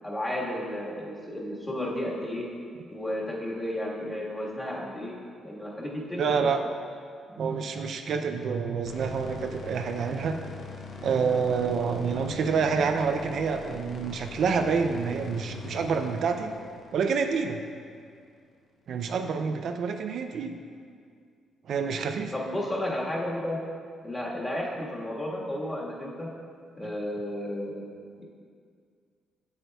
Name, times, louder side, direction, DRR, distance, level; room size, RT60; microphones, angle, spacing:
voice 1, 0.0-2.4 2.9-5.1 5.4-6.5 7.3-7.5 22.3-23.6 24.0-26.3 26.8-27.8 28.2-28.3, left 1 dB, 15° left, -4 dB, 1.5 m, -33 dB
voice 2, 6.2-6.6 7.4-10.4 11.0-16.5 16.9-17.6 18.9-20.6 21.7-22.3, right 5 dB, 65° right, 6 dB, 0.4 m, -27 dB
sound 1, 8.9-18.0, left 4 dB, 60° left, 0.8 m, -42 dB
8.1 x 7.9 x 2.3 m, 2.2 s
cardioid pair, 90°, 0 cm